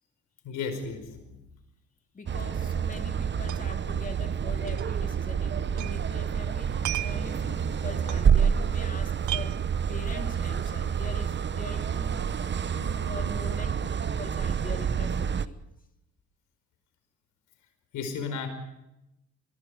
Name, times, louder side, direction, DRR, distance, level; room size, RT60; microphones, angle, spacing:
voice 1, 0.4-1.4 17.9-18.5, left 5 dB, 90° left, 5.1 m, -34 dB
voice 2, 2.1-12.4 12.7-15.7, left 3 dB, 25° left, 2.8 m, -43 dB
sound 1, 2.3-15.5, right 7 dB, 35° right, 0.9 m, -28 dB
sound 2, 3.5-3.8 4.1-4.2 4.7-6.0 6.3-8.8 9.1-10.2, right 14 dB, 75° right, 0.8 m, -37 dB
24.5 x 21.5 x 5.0 m
cardioid pair, 90°, 30 cm